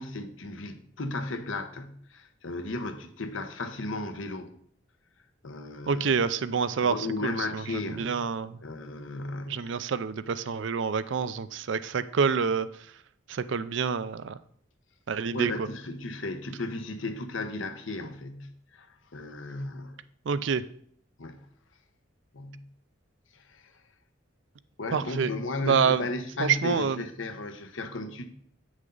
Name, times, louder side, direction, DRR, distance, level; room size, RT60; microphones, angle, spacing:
voice 1, 0.0-4.5 5.4-6.1 6.8-8.2 8.6-9.8 15.3-20.0 21.2-21.4 22.3-22.7 23.3-23.7 24.8-28.3, left 2 dB, 80° left, 0.9 m, -35 dB
voice 2, 5.9-6.9 7.2-8.6 9.5-12.7 13.3-14.4 15.1-15.7 20.3-20.6 24.9-25.3 25.6-26.1 26.4-27.0, right 6 dB, 65° right, 0.4 m, -27 dB
8.7 x 6.3 x 3.9 m
head